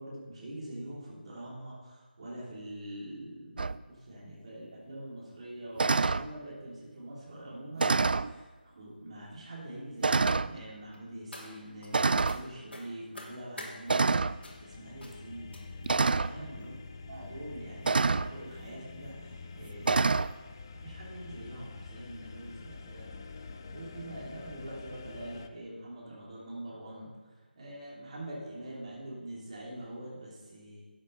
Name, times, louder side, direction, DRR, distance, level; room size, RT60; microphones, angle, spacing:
voice 1, 0.0-8.5 8.8-14.0 14.6-15.5 16.0-16.7 17.1-20.2 20.7-23.1 23.7-27.1 27.6-30.8, right 1 dB, 35° right, -6 dB, 2.9 m, -44 dB
sound 1, 3.6-3.8 5.8-6.3 7.8-8.3 9.2-9.3 10.0-10.5 11.9-12.4 13.9-14.4 15.9-16.3 17.9-18.3 19.8-20.3, right 4 dB, 60° right, 0.3 m, -26 dB
Person Stabbed with Knife Small, 10.9-11.9 12.2-12.4 12.7-13.7 14.4-14.7 15.0-15.2 15.5-15.9 16.6-16.7 17.1-17.3 17.6-17.7, left 1 dB, 80° left, 3.3 m, -47 dB
sound 2, 14.2-25.5, left 4 dB, 20° left, 0.4 m, -46 dB
12.0 x 8.1 x 5.4 m, 1.3 s
figure-of-eight pair, 170°, 6 cm